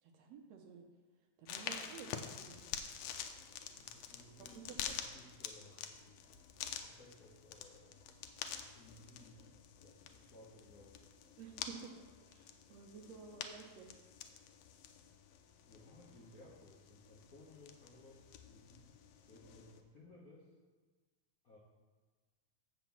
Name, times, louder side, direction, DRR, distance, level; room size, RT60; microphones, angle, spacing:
voice 1, 0.0-0.9 1.4-2.6 4.4-5.0 5.8-5.9 11.4-11.9 12.2-13.9, right 6 dB, 70° right, 3 dB, 1.8 m, -53 dB
sound 1, 1.5-19.8, left 8 dB, 75° left, 1.6 m, -48 dB
voice 2, 3.7-6.2 6.8-8.0 8.7-9.5 9.8-11.0 15.7-18.9 19.3-20.5 21.4-21.6, left 2 dB, 55° left, -5 dB, 0.9 m, -60 dB
7.9 x 5.0 x 7.0 m, 1.4 s
omnidirectional pair, 3.4 m